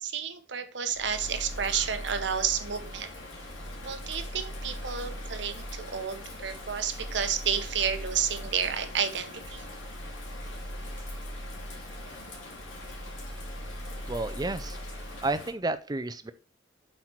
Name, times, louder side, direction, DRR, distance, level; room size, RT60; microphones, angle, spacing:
voice 1, 0.0-3.1 3.8-9.6, right 7 dB, 65° right, 9 dB, 0.9 m, -31 dB
Bird vocalization bird call bird song / Rain, 0.9-15.5, equal, 80° left, 2.9 m, -39 dB
voice 2, 14.1-14.8 15.2-16.3, right 2 dB, 20° right, 11 dB, 0.5 m, -31 dB
7.7 x 4.4 x 4.5 m, 0.35 s
head